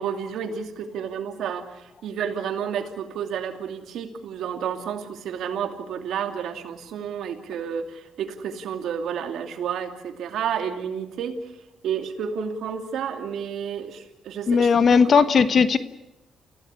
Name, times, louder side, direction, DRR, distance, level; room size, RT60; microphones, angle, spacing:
voice 1, 0.0-11.5 11.8-15.3, right 7 dB, 75° right, 6 dB, 2.7 m, -31 dB
voice 2, 14.5-15.8, left 6 dB, 50° left, 12 dB, 1.1 m, -17 dB
28.5 x 16.5 x 8.3 m, 0.98 s
cardioid pair, 90°, 0 cm